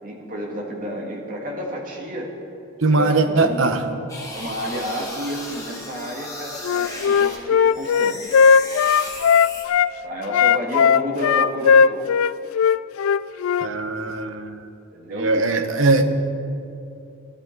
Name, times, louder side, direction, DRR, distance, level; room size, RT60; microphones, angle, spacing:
voice 1, 0.0-2.3 2.9-3.6 4.3-8.3 10.0-12.1 14.9-15.4, equal, 40° right, -1 dB, 2.2 m, -30 dB
voice 2, 2.8-3.9 13.6-14.6 15.1-16.0, right 3 dB, 70° right, 7 dB, 1.0 m, -20 dB
sound 1, 4.1-7.4 7.7-9.6, left 2 dB, 15° left, 2.0 m, -36 dB
Wind instrument woodwind instrument, 6.6-9.9 10.3-13.7, left 6 dB, 85° left, 0.3 m, -17 dB
16.5 x 13.5 x 4.7 m, 2.7 s
head